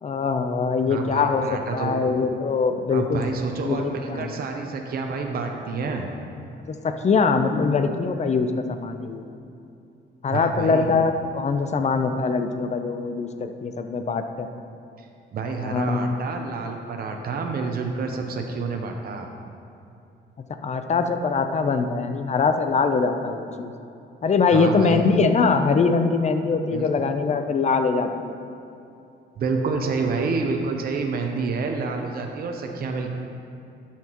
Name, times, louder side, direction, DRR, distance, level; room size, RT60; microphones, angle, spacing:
voice 1, 0.0-1.4 1.7-3.2 3.6-4.3 6.8-9.2 10.2-14.5 15.6-16.2 20.6-23.7 24.2-28.4, left 4 dB, 35° left, 7 dB, 0.6 m, -22 dB
voice 2, 0.9-2.1 2.9-6.1 10.3-10.9 15.0-19.3 24.5-25.1 26.7-26.9 29.4-33.1, right 4 dB, 50° right, 3 dB, 0.7 m, -28 dB
12.5 x 5.8 x 3.0 m, 2.7 s
cardioid pair, 90°, 20 cm